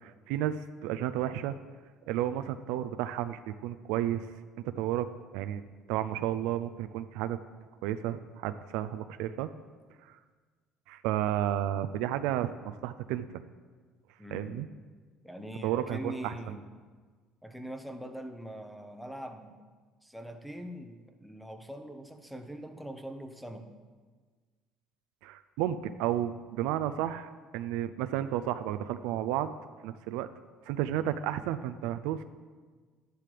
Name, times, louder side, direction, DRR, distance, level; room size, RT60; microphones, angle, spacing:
voice 1, 0.0-1.5 2.1-4.3 4.6-5.6 5.9-7.4 7.8-9.5 10.0-10.2 10.9-13.3 14.3-14.7 15.6-16.5 25.2-29.6 29.8-30.3 30.7-32.2, right 12 dB, 85° right, 11 dB, 0.4 m, -32 dB
voice 2, 14.2-14.7 15.2-16.6 17.4-19.6 20.0-23.7, right 1 dB, ahead, 6 dB, 0.8 m, -42 dB
11.5 x 10.5 x 3.4 m, 1.5 s
cardioid pair, 110°, 0 cm